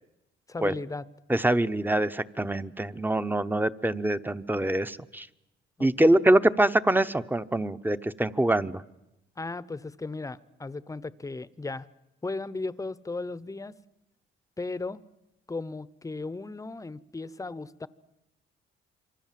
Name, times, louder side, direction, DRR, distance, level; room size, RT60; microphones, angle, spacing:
voice 1, 0.5-1.0 5.8-6.2 9.4-11.9 12.2-13.7 14.6-15.0 15.5-17.9, left 3 dB, 15° left, 17 dB, 0.9 m, -36 dB
voice 2, 1.3-5.3 5.8-8.8, right 1 dB, 10° right, 12 dB, 0.9 m, -24 dB
27.0 x 24.5 x 7.6 m, 0.92 s
cardioid pair, 90°, 20 cm